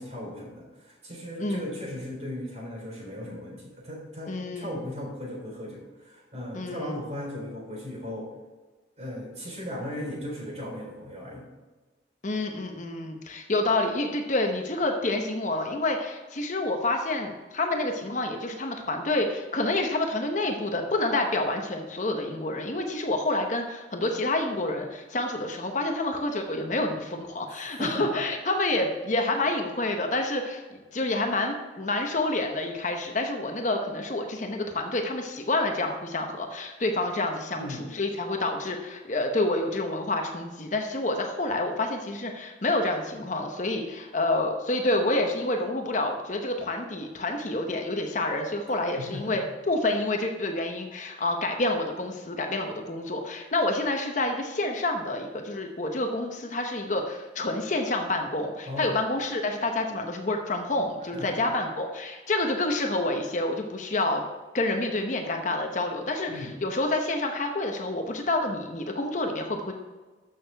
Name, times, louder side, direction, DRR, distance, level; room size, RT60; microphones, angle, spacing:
voice 1, 0.0-8.3 9.0-11.5 27.5-28.1 37.5-37.9 49.0-49.4 58.7-58.9 61.1-61.3 66.3-66.6, left 1 dB, 35° right, -2 dB, 3.4 m, -37 dB
voice 2, 1.4-1.7 4.3-4.8 6.5-6.9 12.2-64.2 64.5-69.7, left 2 dB, 45° left, 3 dB, 0.9 m, -28 dB
13.5 x 6.3 x 3.5 m, 1.3 s
head